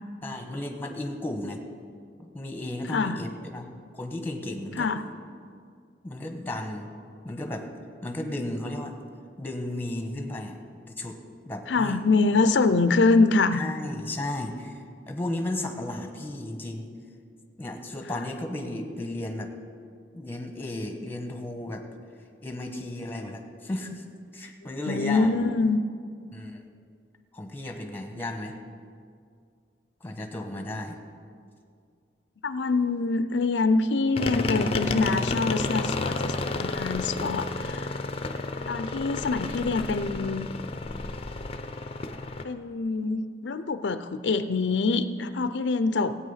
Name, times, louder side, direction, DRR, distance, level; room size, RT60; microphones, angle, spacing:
voice 1, 0.2-1.6 2.2-3.7 3.9-4.9 6.0-6.9 7.2-7.7 8.0-9.0 9.4-11.2 11.4-12.0 13.5-16.9 17.6-19.5 20.1-21.8 22.4-24.0 24.3-25.3 26.3-26.6 27.3-28.6 30.0-30.9, left 1 dB, 10° left, 4 dB, 1.3 m, -34 dB
voice 2, 2.9-3.2 4.8-5.0 11.7-13.6 24.9-25.8 32.4-37.9 38.7-40.5 42.4-46.2, left 3 dB, 90° left, 12 dB, 0.5 m, -25 dB
sound 1, 34.1-42.4, left 3 dB, 35° left, 0.6 m, -31 dB
17.0 x 8.6 x 5.7 m, 2.2 s
head